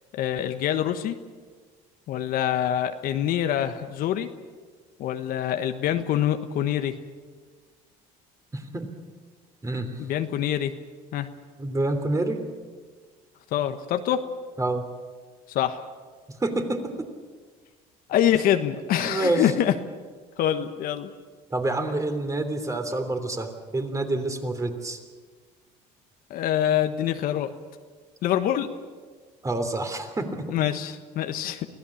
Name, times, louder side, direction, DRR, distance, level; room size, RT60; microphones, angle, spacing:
voice 1, 0.1-1.1 2.1-4.3 5.0-6.9 10.0-10.7 11.1-11.3 13.5-14.2 15.5-15.8 18.1-19.7 20.4-21.1 26.3-27.5 28.2-28.7 30.5-31.7, left 11 dB, 65° left, 8 dB, 1.4 m, -25 dB
voice 2, 8.5-8.9 9.6-10.0 11.6-12.4 14.6-14.8 16.4-17.1 19.0-19.5 21.5-25.0 29.4-30.5, right 2 dB, 20° right, 7 dB, 3.2 m, -27 dB
24.5 x 16.5 x 8.6 m, 1.5 s
supercardioid pair, 100°, 16 cm